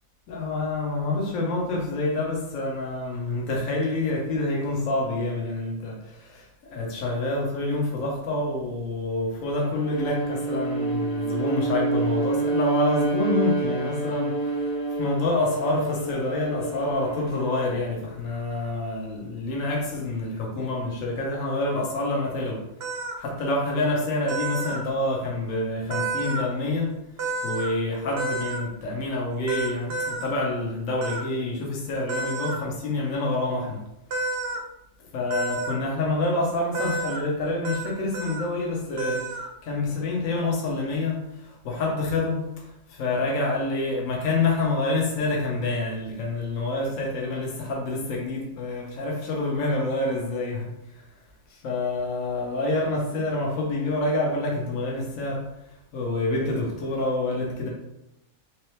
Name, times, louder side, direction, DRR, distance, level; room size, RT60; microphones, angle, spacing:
voice 1, 0.3-14.7 15.0-22.6 23.2-26.9 27.4-33.8 35.1-39.2 39.6-42.4 42.9-50.7 51.5-55.4 55.9-57.7, left 2 dB, 70° left, -2 dB, 1.2 m, -27 dB
Bowed string instrument, 9.6-18.0, right 3 dB, 5° right, 0.5 m, -28 dB
sound 1, 22.8-23.2 24.3-24.8 25.9-26.5 27.2-27.7 28.2-28.6 29.5-30.3 31.0-31.2 32.1-32.6 34.1-34.6 35.3-35.7 36.7-37.2 37.6-37.9 38.1-38.5 39.0-39.5, right 3 dB, 65° right, 0.7 m, -30 dB
3.7 x 3.0 x 3.2 m, 0.85 s
omnidirectional pair, 1.4 m